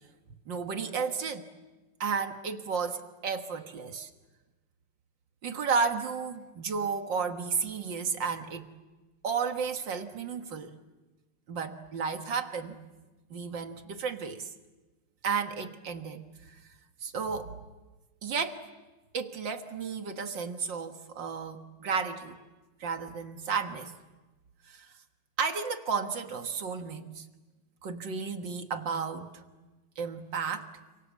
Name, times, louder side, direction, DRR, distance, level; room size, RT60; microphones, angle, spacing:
voice 1, 0.5-1.5 2.0-4.1 5.4-8.7 9.2-10.7 11.5-12.8 13.3-14.5 15.2-16.6 17.0-17.5 18.2-18.6 19.1-22.4 22.8-23.9 24.7-24.9 25.4-27.3 27.8-29.4 30.0-30.7, right 5 dB, 60° right, 7 dB, 2.1 m, -33 dB
29.5 x 26.0 x 7.4 m, 1.2 s
omnidirectional pair, 2.4 m